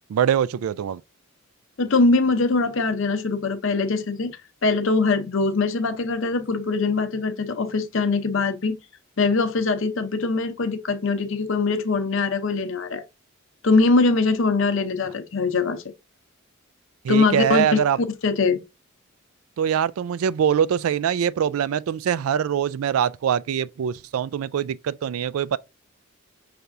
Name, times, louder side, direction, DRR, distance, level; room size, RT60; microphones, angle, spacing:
voice 1, 0.1-1.0 17.0-18.0 19.6-25.6, right 8 dB, 80° right, 0.3 m, -23 dB
voice 2, 1.8-8.8 9.2-13.0 13.6-15.8 17.1-17.8 18.2-18.6, left 3 dB, 65° left, 0.7 m, -22 dB
5.7 x 3.4 x 2.6 m
head